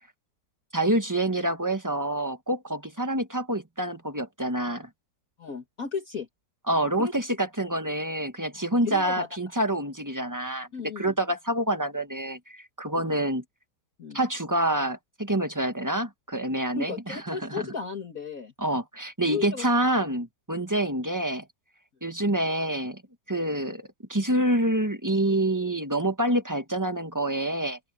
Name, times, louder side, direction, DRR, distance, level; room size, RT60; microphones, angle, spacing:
voice 1, 0.7-4.9 6.7-13.4 14.1-17.7 18.6-21.4 22.0-23.0 23.3-27.8, right 1 dB, 10° right, 1.2 m, -27 dB
voice 2, 5.4-6.3 7.0-7.1 8.5-9.3 10.7-11.1 13.0-13.2 14.0-14.2 16.8-18.5 19.3-19.7, left 5 dB, 55° left, 2.1 m, -35 dB
open air
omnidirectional pair, 1.9 m